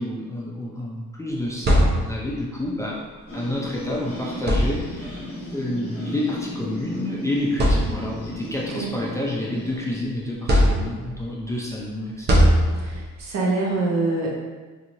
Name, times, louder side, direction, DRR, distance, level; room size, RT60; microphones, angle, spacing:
voice 1, 0.0-3.0 3.3-5.2 5.5-12.5, left 1 dB, 10° left, -4 dB, 0.5 m, -29 dB
sound 1, 1.3-2.5 3.7-3.9 4.4-5.2 6.3-6.5 7.0-7.1 7.5-8.3 8.8-9.9 10.5-11.3 12.3-13.2, equal, 35° right, 0.7 m, -21 dB
sound 2, 3.3-9.9, equal, 45° left, 1.2 m, -34 dB
voice 2, 12.8-14.3, right 3 dB, 60° right, -4 dB, 0.9 m, -25 dB
2.9 x 2.8 x 2.6 m, 1.3 s
cardioid pair, 90°, 30 cm